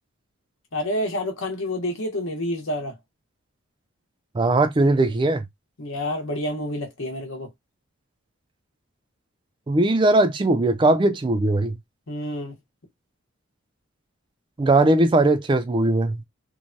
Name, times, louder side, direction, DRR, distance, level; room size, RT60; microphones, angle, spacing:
voice 1, 0.7-2.9 5.8-7.5 12.1-12.5, left 1 dB, 65° left, 1.0 m, -28 dB
voice 2, 4.3-5.5 9.7-11.8 14.6-16.2, right 2 dB, 20° right, 0.3 m, -19 dB
3.1 x 2.1 x 2.6 m
head